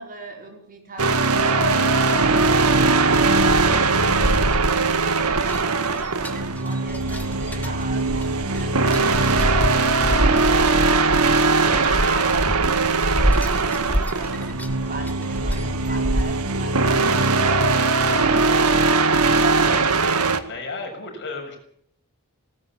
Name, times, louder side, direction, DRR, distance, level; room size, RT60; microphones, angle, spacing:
voice 1, 0.0-6.0 6.6-12.8 13.2-19.9, right 2 dB, 40° right, 2 dB, 5.4 m, -37 dB
sound 1, 1.0-20.4, right 3 dB, 85° right, 1.8 m, -20 dB
sound 2, 3.6-16.2, equal, 10° left, 2.0 m, -27 dB
voice 2, 20.4-21.6, left 3 dB, 55° left, 3 dB, 7.0 m, -33 dB
19.0 x 18.5 x 8.5 m, 0.69 s
head